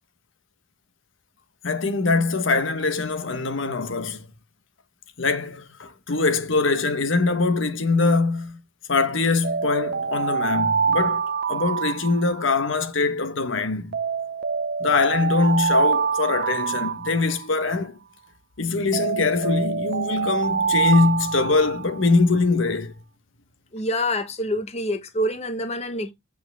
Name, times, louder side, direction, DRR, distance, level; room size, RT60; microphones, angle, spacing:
voice 1, 1.6-4.3 5.2-8.6 8.9-14.0 14.8-18.0 18.6-22.9, left 3 dB, 80° left, 1.3 m, -23 dB
Alarm, 9.4-12.8 13.9-17.8 18.9-22.2, right 6 dB, 50° right, 0.5 m, -25 dB
voice 2, 23.7-26.1, left 1 dB, 35° left, 1.1 m, -26 dB
8.6 x 6.3 x 3.5 m
head